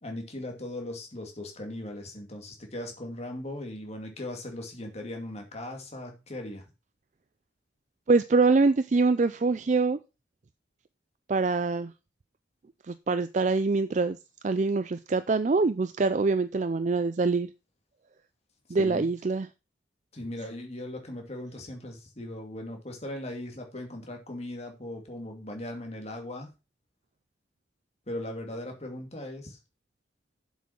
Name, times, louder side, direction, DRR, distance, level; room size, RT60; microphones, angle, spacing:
voice 1, 0.0-6.6 18.8-19.1 20.1-26.5 28.1-29.6, left 1 dB, 35° left, 3 dB, 2.4 m, -38 dB
voice 2, 8.1-10.0 11.3-11.9 12.9-14.2 14.4-17.5 18.7-19.5, right 3 dB, 40° right, 12 dB, 0.4 m, -24 dB
7.4 x 6.2 x 5.8 m, 0.28 s
head